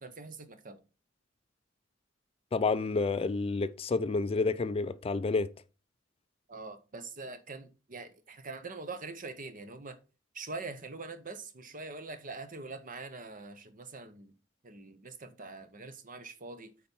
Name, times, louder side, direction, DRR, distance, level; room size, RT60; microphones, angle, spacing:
voice 1, 0.0-0.8 6.5-10.0 10.3-14.3 14.6-16.7, right 3 dB, 45° right, 1.0 m, -43 dB
voice 2, 2.5-5.5, left 3 dB, 30° left, 0.4 m, -29 dB
8.6 x 4.3 x 5.4 m
head